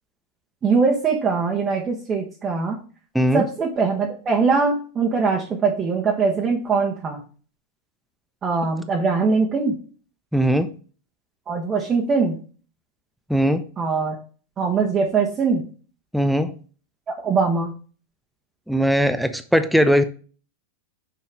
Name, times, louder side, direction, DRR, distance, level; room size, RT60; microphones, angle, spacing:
voice 1, 0.6-2.8 3.3-7.2 8.4-9.8 11.5-12.4 13.8-14.2 14.6-15.6 17.1-17.7, right 4 dB, 25° right, -1 dB, 1.3 m, -22 dB
voice 2, 10.3-10.7 13.3-13.6 16.1-16.5 18.7-20.0, equal, ahead, 10 dB, 0.6 m, -19 dB
6.6 x 5.5 x 3.5 m, 0.38 s
figure-of-eight pair, 90°, 0 cm